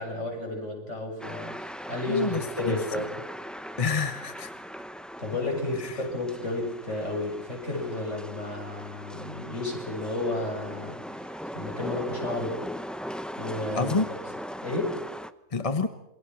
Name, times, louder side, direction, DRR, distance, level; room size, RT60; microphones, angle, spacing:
voice 1, 0.0-3.1 5.2-12.6 13.4-14.0 14.6-15.0, left 2 dB, 50° left, 1 dB, 7.6 m, -32 dB
sound 1, 1.2-15.3, equal, ahead, 0.4 m, -39 dB
voice 2, 2.1-2.8 3.8-4.5 5.8-6.0 13.7-14.1 15.5-15.9, left 4 dB, 25° left, 9 dB, 1.0 m, -28 dB
28.0 x 23.5 x 6.2 m, 0.85 s
omnidirectional pair, 1.6 m